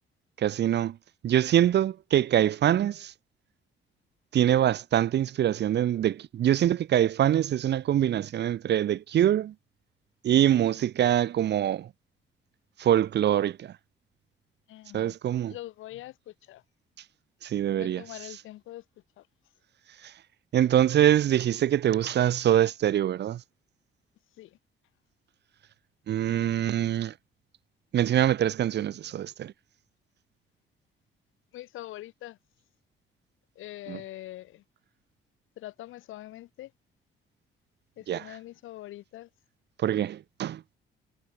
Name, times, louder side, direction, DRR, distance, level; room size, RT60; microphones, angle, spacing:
voice 1, 0.4-1.0 1.2-3.1 4.3-9.5 10.2-11.9 12.8-13.7 14.9-15.5 17.4-18.0 20.0-20.1 20.5-23.4 26.1-27.1 27.9-29.5 33.9-34.0 38.1-38.3 39.8-40.6, right 11 dB, 60° right, 0.8 m, -24 dB
voice 2, 14.7-15.2 15.5-16.6 17.8-18.8 19.2-19.3 24.4-24.6 31.5-32.4 33.6-34.6 35.6-36.7 38.0-39.3, left 15 dB, 85° left, 2.8 m, -43 dB
cardioid pair, 90°, 20 cm